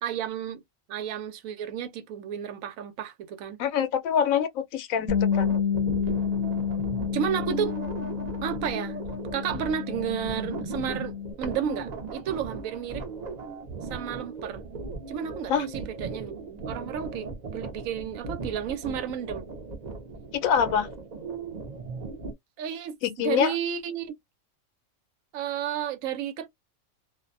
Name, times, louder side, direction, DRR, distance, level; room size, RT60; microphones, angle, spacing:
voice 1, 0.0-0.6 0.9-3.6 7.1-7.8 8.4-9.0 9.3-13.0 13.9-14.6 15.1-19.5 22.6-24.1 25.3-26.5, right 9 dB, 80° right, 1.0 m, -32 dB
voice 2, 3.6-5.6 15.5-15.6 20.3-20.9 23.0-23.5, left 8 dB, 80° left, 1.0 m, -25 dB
Bass guitar, 5.1-11.3, left 7 dB, 10° right, 0.7 m, -29 dB
sound 1, 5.3-22.3, right 3 dB, 45° right, 0.6 m, -37 dB
2.5 x 2.1 x 2.5 m
omnidirectional pair, 1.4 m